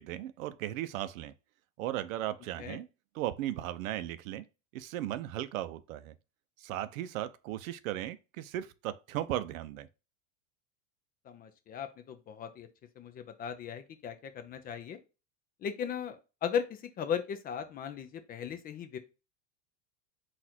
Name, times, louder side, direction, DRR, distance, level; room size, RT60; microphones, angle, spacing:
voice 1, 0.0-1.3 1.8-2.9 3.1-4.5 4.7-6.1 6.6-9.9, right 13 dB, 85° right, 0.6 m, -36 dB
voice 2, 11.3-12.7 13.0-15.0 15.6-19.0, left 8 dB, 25° left, 0.4 m, -37 dB
4.1 x 2.5 x 4.2 m
supercardioid pair, 135°, 39 cm